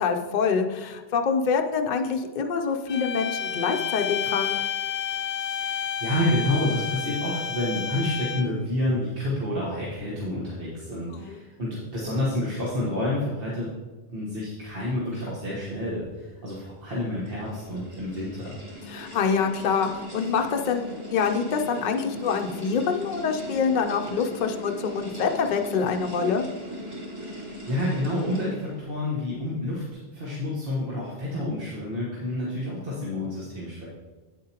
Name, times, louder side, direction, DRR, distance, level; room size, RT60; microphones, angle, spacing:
voice 1, 0.0-4.6 11.1-11.4 18.9-26.4, left 5 dB, 55° left, 5 dB, 0.6 m, -26 dB
sound 1, 2.9-8.6, left 8 dB, 90° left, 0.8 m, -30 dB
voice 2, 5.6-13.7 14.1-18.6 27.7-29.8 30.1-33.9, left 1 dB, 60° right, -7 dB, 1.6 m, -29 dB
sound 2, 16.7-28.9, equal, 15° right, 2.5 m, -39 dB
9.0 x 7.5 x 2.9 m, 1.3 s
omnidirectional pair, 1.1 m